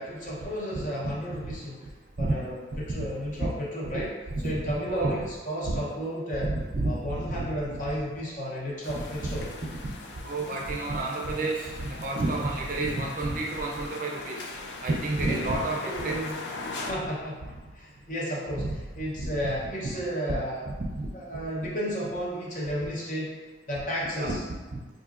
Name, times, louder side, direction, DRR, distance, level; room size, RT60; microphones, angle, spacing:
voice 1, 0.0-1.8 2.2-4.1 4.4-6.5 6.8-9.5 12.4-12.5 15.2-15.4 15.8-18.7 19.0-20.6 21.1-24.4, equal, 45° left, -5 dB, 0.8 m, -33 dB
voice 2, 0.7-1.1 1.4-1.5 2.2-2.4 2.7-2.8 3.4-3.5 3.9-4.0 4.3-5.1 5.7-5.8 6.4-7.8 8.9-9.9 10.2-14.4 14.8-16.2 18.6-18.8 19.2-19.3 20.7-21.1 24.1-24.4 24.7-24.8, right 2 dB, 50° right, 0 dB, 0.5 m, -30 dB
sound 1, 8.8-16.9, left 3 dB, 65° left, 0.3 m, -40 dB
3.8 x 2.6 x 2.4 m, 1.3 s
head